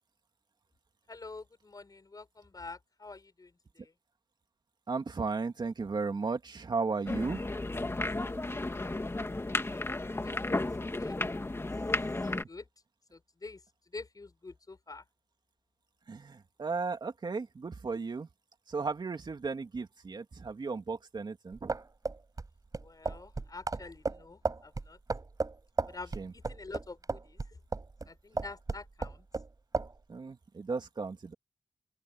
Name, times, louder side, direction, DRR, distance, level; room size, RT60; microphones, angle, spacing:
voice 1, 1.1-3.9 8.1-8.2 8.5-11.2 12.5-12.7 13.1-15.0 22.8-25.0 25.9-27.4 28.0-29.3, left 3 dB, 45° left, 6.7 m, -48 dB
voice 2, 4.9-7.5 12.2-12.4 16.1-18.3 18.7-21.7 26.2-26.3 30.1-31.3, right 4 dB, 60° right, 2.8 m, -35 dB
sound 1, 7.1-12.4, left 2 dB, 30° left, 2.1 m, -33 dB
sound 2, 21.5-28.1 28.4-29.5 29.7-29.9, right 3 dB, 45° right, 6.6 m, -34 dB
open air
cardioid pair, 50°, 8 cm